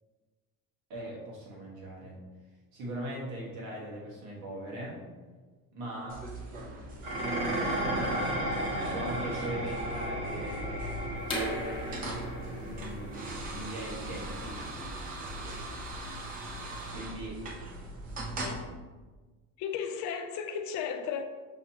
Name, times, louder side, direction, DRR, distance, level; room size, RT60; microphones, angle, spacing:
voice 1, 0.9-2.2 2.7-5.1 5.7-6.2 7.2-8.4 8.9-10.9 12.6-14.6 16.9-17.4, right 1 dB, 85° right, -4 dB, 1.5 m, -40 dB
sound 1, 6.1-18.6, right 1 dB, 25° right, 0.4 m, -41 dB
Dishes pots and pans, 7.0-15.8, right 1 dB, 65° right, 1.3 m, -35 dB
sound 2, 11.2-16.8, equal, 15° left, 0.7 m, -40 dB
voice 2, 19.6-21.2, left 7 dB, 60° left, 6 dB, 0.5 m, -34 dB
5.6 x 2.9 x 2.8 m, 1.3 s
cardioid pair, 180°, 34 cm